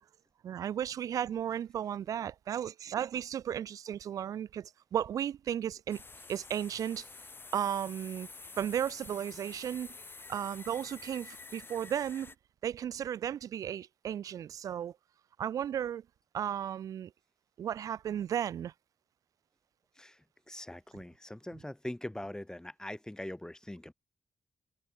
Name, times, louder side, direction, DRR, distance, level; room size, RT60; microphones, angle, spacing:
voice 1, 0.4-6.0 6.3-7.1 7.5-8.3 8.6-9.9 10.3-12.3 12.6-14.9 15.4-16.0 16.3-17.1 17.6-18.7, right 9 dB, 75° right, 0.6 m, -34 dB
sound 1, 5.9-12.3, left 3 dB, 40° left, 1.5 m, -49 dB
voice 2, 19.9-23.9, left 1 dB, 10° left, 1.6 m, -42 dB
supercardioid pair, 45°, 6 cm